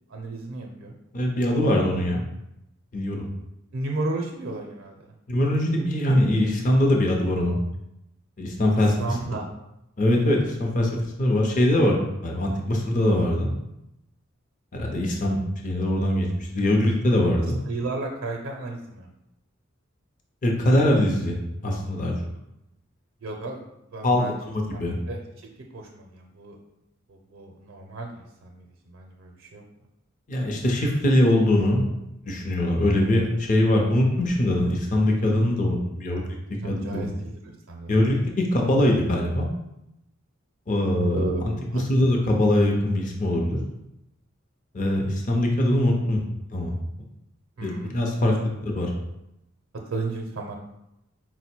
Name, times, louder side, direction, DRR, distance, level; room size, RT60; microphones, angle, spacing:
voice 1, 0.1-0.9 3.7-5.0 9.0-9.5 17.7-19.1 23.2-23.6 23.9-24.4 24.7-25.2 25.7-26.6 27.1-29.6 36.5-38.3 41.1-42.2 47.6-47.9 48.2-48.3 49.9-50.6, right 2 dB, 75° right, 1 dB, 0.5 m, -34 dB
voice 2, 1.1-2.2 2.9-3.3 5.3-7.6 8.4-9.2 10.0-10.9 11.2-12.0 12.2-13.5 14.7-15.4 15.6-16.3 16.5-17.6 20.4-22.1 24.0-25.0 30.3-31.8 32.2-36.2 36.6-37.1 37.9-39.5 40.7-41.2 41.7-43.6 44.7-46.2 46.5-46.7 47.6-48.3 48.6-48.9, left 1 dB, 40° left, 0 dB, 0.6 m, -22 dB
4.5 x 2.1 x 4.3 m, 0.85 s
head